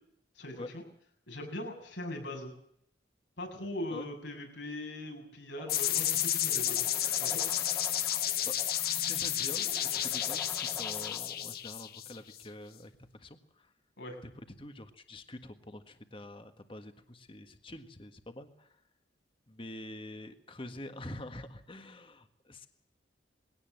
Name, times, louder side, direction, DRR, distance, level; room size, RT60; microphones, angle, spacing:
voice 1, 0.3-0.8 1.3-2.5 3.4-6.8 7.2-7.4 14.0-14.2, left 1 dB, 85° left, 2 dB, 6.8 m, -40 dB
sound 1, 5.6-11.6, left 1 dB, 5° left, 1.8 m, -48 dB
sound 2, 5.7-12.4, left 11 dB, 55° left, 1.4 m, -31 dB
voice 2, 8.9-13.7 14.2-18.7 19.5-22.7, left 1 dB, 30° left, 7 dB, 1.6 m, -46 dB
21.0 x 17.5 x 7.9 m, 0.69 s
head